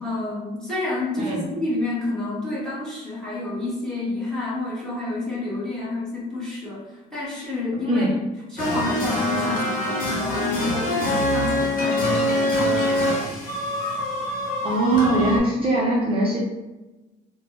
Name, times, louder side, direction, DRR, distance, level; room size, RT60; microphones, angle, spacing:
voice 1, 0.0-8.0 8.5-13.0, left 2 dB, 5° left, -8 dB, 1.4 m, -29 dB
sound 1, 8.6-15.4, left 1 dB, 55° left, 1.1 m, -24 dB
voice 2, 14.6-16.4, right 2 dB, 35° right, -5 dB, 0.7 m, -21 dB
3.2 x 2.2 x 3.1 m, 1.1 s
cardioid pair, 110°, 17 cm